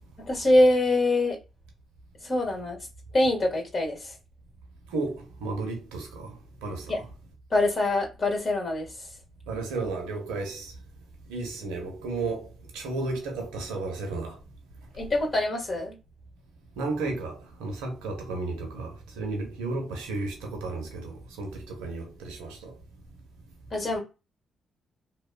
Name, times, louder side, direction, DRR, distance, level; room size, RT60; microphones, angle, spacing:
voice 1, 0.2-1.4 2.2-2.8 3.1-4.1 6.9-7.0 7.5-8.9 14.9-16.0 23.7-24.0, left 1 dB, 40° left, 1.4 m, -24 dB
voice 2, 4.9-6.3 6.6-7.0 9.5-10.7 11.3-12.5 12.7-14.4 16.8-22.7, right 3 dB, 80° right, 0.7 m, -33 dB
2.8 x 2.1 x 2.2 m
hypercardioid pair, 45°, 0 cm